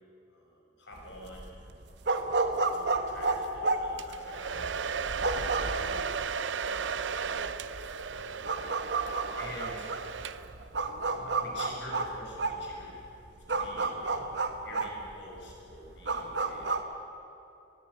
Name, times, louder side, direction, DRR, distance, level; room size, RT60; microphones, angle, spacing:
voice 1, 0.3-1.5 2.2-6.0 6.6-7.5 8.0-8.5 9.4-9.9 11.1-13.0 13.5-17.0, left 1 dB, 75° left, -2 dB, 6.0 m, -48 dB
sound 1, 1.0-16.8, right 3 dB, 65° right, 1.3 m, -32 dB
Domestic sounds home sounds, 4.0-10.7, right 6 dB, 90° right, 0.7 m, -35 dB
21.5 x 13.5 x 9.6 m, 2.8 s
head